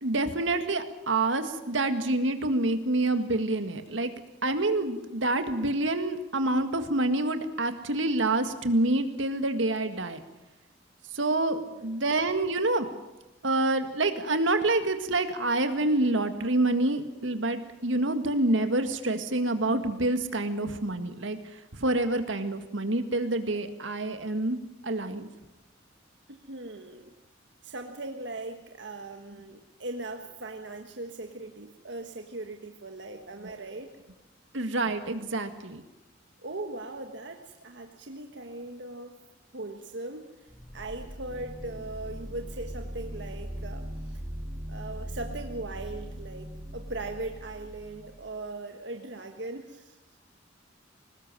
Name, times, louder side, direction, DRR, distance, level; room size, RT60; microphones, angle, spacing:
voice 1, 0.0-4.1 4.4-10.2 11.1-12.9 13.4-24.6 24.8-25.3 33.4-33.6 34.5-35.8, right 2 dB, 80° right, 8 dB, 1.9 m, -27 dB
voice 2, 26.3-27.1 27.6-33.9 36.4-39.2 39.5-40.2 40.7-44.2 44.7-50.0, right 2 dB, 65° right, 4 dB, 1.5 m, -39 dB
sound 1, 40.5-48.3, equal, 10° left, 3.5 m, -40 dB
21.5 x 19.0 x 7.6 m, 1.0 s
head